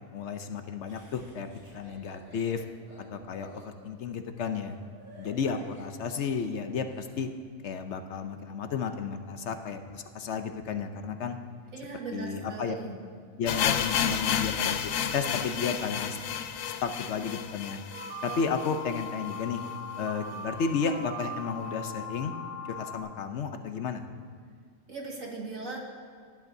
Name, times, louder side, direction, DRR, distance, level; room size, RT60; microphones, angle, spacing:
voice 1, 0.1-2.7 3.1-4.8 5.2-7.3 7.6-11.4 12.1-12.7 13.4-16.2 16.8-17.8 18.2-19.6 20.0-22.3 22.7-24.0, left 6 dB, 65° left, 7 dB, 0.9 m, -33 dB
Laughter, 0.8-7.2, right 1 dB, 55° right, 4.0 m, -54 dB
voice 2, 11.7-12.9 24.9-25.8, right 3 dB, 85° right, -2 dB, 2.3 m, -38 dB
sound 1, 13.5-19.4 19.6-19.7 20.0-20.1 20.7-20.8, left 8 dB, 85° left, 1.0 m, -31 dB
sound 2, 17.9-23.0, left 2 dB, 15° left, 1.5 m, -40 dB
18.0 x 11.0 x 2.7 m, 2.1 s
omnidirectional pair, 1.4 m